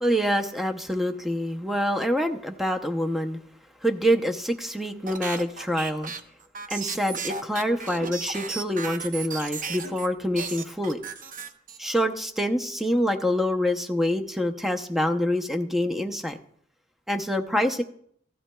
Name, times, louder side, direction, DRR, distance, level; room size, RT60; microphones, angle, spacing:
voice 1, 0.0-3.4 3.8-6.1 6.7-11.0 11.8-16.4 17.1-17.8, equal, ahead, 5 dB, 0.6 m, -26 dB
sound 1, 5.1-10.1 10.3-12.0, right 5 dB, 45° right, 0.8 m, -35 dB
15.0 x 14.0 x 2.2 m, 0.65 s
head